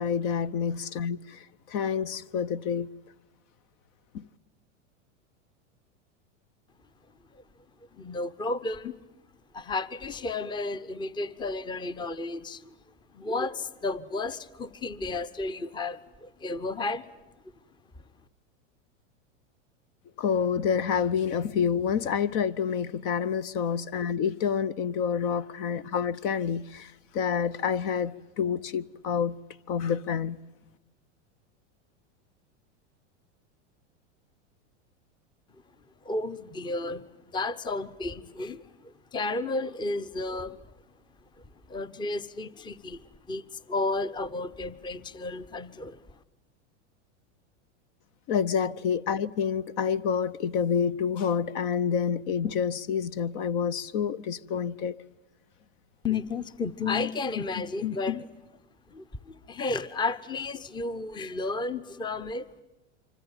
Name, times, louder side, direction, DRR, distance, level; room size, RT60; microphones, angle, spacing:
voice 1, 0.0-2.9 4.1-4.2 20.2-29.4 29.7-30.4 48.3-55.0, left 7 dB, 50° left, 0.9 m, -28 dB
voice 2, 7.9-9.0 9.5-12.7 13.1-17.1 36.0-40.6 41.7-46.0 56.0-58.3 58.9-62.5, left 3 dB, 15° left, 0.8 m, -32 dB
25.5 x 24.5 x 8.9 m
supercardioid pair, 125°, 35 cm